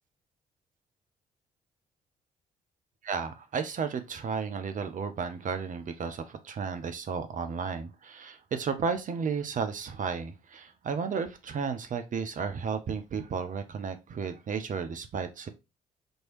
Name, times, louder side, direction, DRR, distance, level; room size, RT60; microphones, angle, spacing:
voice 1, 3.0-15.5, right 5 dB, 45° right, 0.7 m, -33 dB
4.4 x 3.1 x 3.0 m
figure-of-eight pair, 40°, 19 cm